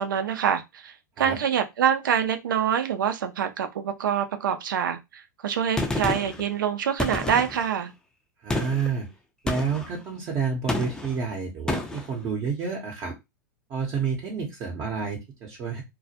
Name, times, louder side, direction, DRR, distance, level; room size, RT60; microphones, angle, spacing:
voice 1, 0.0-7.9, right 8 dB, 80° right, 0.5 m, -26 dB
Gunshot gunfire, 5.8-6.4 7.0-7.7 8.5-8.9 9.5-9.9 10.7-11.2 11.7-12.1, left 2 dB, 5° left, 0.4 m, -29 dB
voice 2, 8.4-9.1 9.4-13.1 13.7-15.8, right 5 dB, 35° right, 0.7 m, -29 dB
2.2 x 2.1 x 2.7 m
hypercardioid pair, 110°, 11 cm